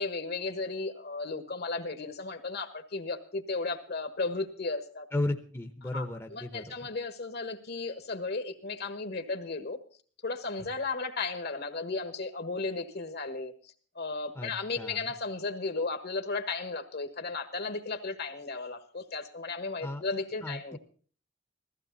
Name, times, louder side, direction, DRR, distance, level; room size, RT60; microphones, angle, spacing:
voice 1, 0.0-5.0 5.9-9.8 10.2-13.5 13.9-20.8, left 3 dB, 55° left, 10 dB, 1.5 m, -35 dB
voice 2, 5.1-6.7 14.3-15.1 19.8-20.0 20.4-20.8, left 1 dB, 15° left, 5 dB, 0.9 m, -35 dB
15.5 x 15.0 x 4.1 m, 0.42 s
head